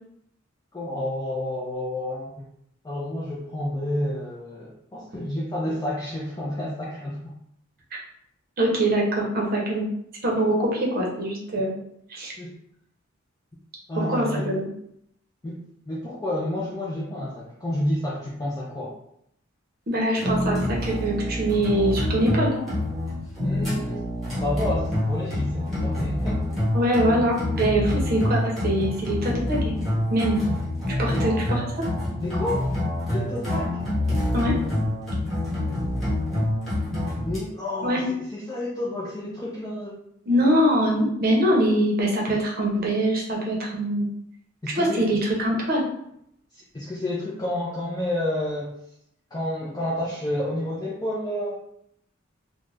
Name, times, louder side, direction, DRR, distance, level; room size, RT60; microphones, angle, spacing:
voice 1, 0.7-2.3 2.8-7.3 12.4-12.5 13.9-14.5 15.4-19.0 23.4-24.0 24.3-26.7 27.6-27.9 31.1-31.2 32.2-32.7 33.1-33.8 37.2-38.0 38.3-40.0 44.6-45.1 46.5-48.7 49.3-51.6, left 1 dB, 20° left, -6 dB, 0.4 m, -30 dB
voice 2, 8.6-9.9 10.2-11.8 12.1-12.3 13.9-14.7 19.9-22.5 26.7-29.7 30.1-30.5 31.0-31.9 34.3-34.6 37.8-38.1 40.3-44.1 44.8-45.8, right 1 dB, 50° right, -2 dB, 0.7 m, -23 dB
sound 1, 20.2-37.4, left 1 dB, ahead, 1.1 m, -27 dB
2.4 x 2.1 x 3.2 m, 0.73 s
head